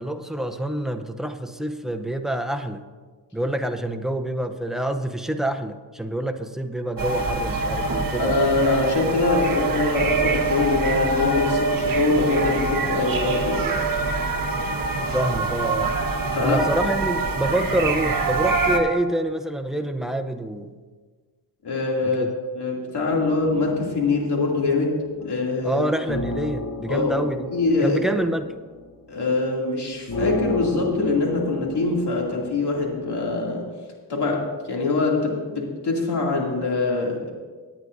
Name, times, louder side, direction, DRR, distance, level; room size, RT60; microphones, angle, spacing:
voice 1, 0.0-2.8 3.3-8.4 15.0-15.9 16.4-20.7 22.0-22.3 25.6-27.5 27.8-28.6, right 1 dB, ahead, 6 dB, 0.7 m, -27 dB
sound 1, 7.0-18.8, right 3 dB, 55° right, 1.3 m, -24 dB
voice 2, 8.1-13.7 16.3-16.6 21.6-22.3 22.5-25.8 26.9-27.1 27.5-28.0 29.1-33.6 34.1-37.3, left 3 dB, 70° left, -2 dB, 2.7 m, -23 dB
sound 2, 23.1-33.6, left 2 dB, 50° left, 1.1 m, -34 dB
18.5 x 9.7 x 2.6 m, 1.5 s
cardioid pair, 95°, 42 cm